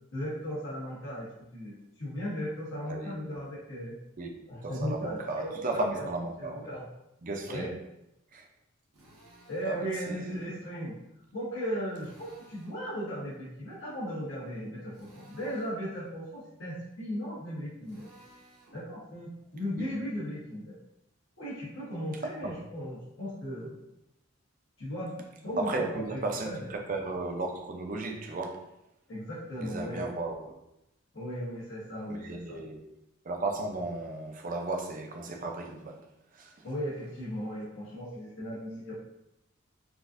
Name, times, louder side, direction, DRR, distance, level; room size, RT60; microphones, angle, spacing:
voice 1, 0.1-1.3 1.5-4.0 4.5-5.5 5.9-6.1 6.4-6.8 7.5-7.7 9.5-10.9 11.3-18.1 18.7-20.7 21.4-23.8 24.8-25.1 25.4-25.7 25.9-26.2 26.4-26.7 29.1-30.0 31.1-32.6 36.6-38.9, equal, 75° left, -10 dB, 1.1 m, -36 dB
voice 2, 4.2-6.7 7.2-7.7 8.3-8.5 9.6-10.5 19.8-19.9 22.2-22.6 25.6-28.6 29.6-30.5 32.1-32.8 33.2-36.0 36.3-36.7, right 2 dB, 40° right, 3 dB, 0.4 m, -35 dB
Drill, 8.9-9.8 11.9-12.8 14.9-15.8 17.8-18.8, right 1 dB, 90° right, 1.2 m, -57 dB
4.0 x 2.5 x 2.5 m, 0.87 s
head